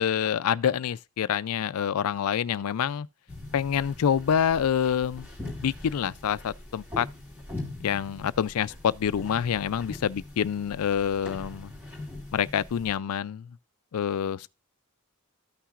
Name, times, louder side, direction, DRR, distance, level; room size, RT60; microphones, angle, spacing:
voice 1, 0.0-3.1 3.5-5.3 5.6-7.1 7.8-11.7 12.3-13.5 13.9-14.5, left 8 dB, 85° left, 0.4 m, -27 dB
sound 1, 3.3-12.9, left 2 dB, 10° right, 2.5 m, -42 dB
13.5 x 5.8 x 2.4 m
head